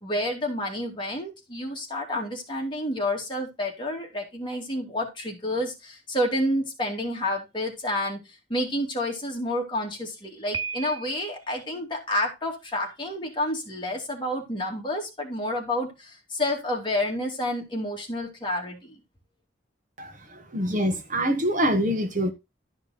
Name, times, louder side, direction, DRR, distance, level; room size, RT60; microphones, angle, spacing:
voice 1, 0.0-8.2 8.5-19.0, left 1 dB, 25° left, 2.7 m, -29 dB
Piano, 10.5-11.5, right 6 dB, 25° right, 0.5 m, -34 dB
voice 2, 20.0-22.3, equal, 40° right, 1.5 m, -25 dB
12.5 x 5.2 x 4.3 m
head